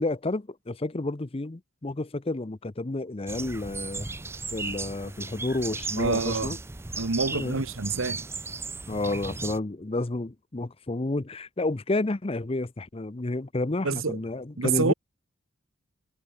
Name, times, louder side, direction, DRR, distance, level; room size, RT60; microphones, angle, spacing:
voice 1, 0.0-4.1 4.5-6.6 7.3-7.6 8.9-14.9, left 2 dB, 30° left, 0.7 m, -30 dB
sound 1, 3.3-9.6, right 3 dB, 10° right, 0.5 m, -36 dB
voice 2, 6.0-6.5 7.0-8.2 13.8-14.2 14.6-14.9, right 4 dB, 80° right, 1.2 m, -27 dB
head